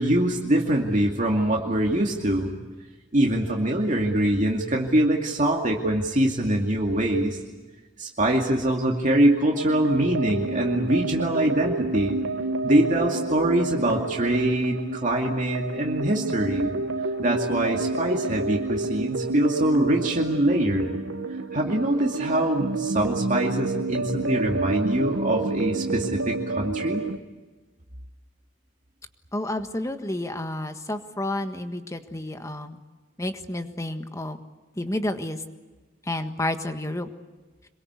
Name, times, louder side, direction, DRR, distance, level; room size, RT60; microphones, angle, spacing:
voice 1, 0.0-2.5 3.1-7.4 8.0-12.2 12.6-16.7 17.2-20.8 21.5-27.0, right 1 dB, 40° right, 0 dB, 2.4 m, -23 dB
sound 1, 9.6-27.2, right 3 dB, 85° right, 1.0 m, -29 dB
voice 2, 29.3-32.8 33.2-34.4 34.8-35.4 36.0-37.1, left 1 dB, 15° left, 7 dB, 1.5 m, -30 dB
26.5 x 23.0 x 8.2 m, 1.3 s
head